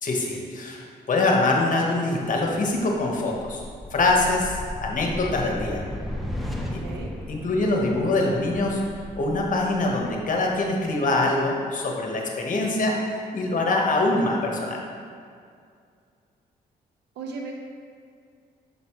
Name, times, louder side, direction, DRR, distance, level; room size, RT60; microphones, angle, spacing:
voice 1, 0.0-3.6 3.9-5.8 7.3-8.8 9.2-13.0 13.3-14.8, left 2 dB, 50° left, 0 dB, 1.1 m, -24 dB
sound 1, 2.9-10.9, left 1 dB, ahead, 0.8 m, -36 dB
voice 2, 6.6-7.1 17.2-17.5, right 4 dB, 90° right, 0 dB, 0.9 m, -36 dB
6.9 x 5.3 x 3.1 m, 2.2 s
cardioid pair, 70°, 17 cm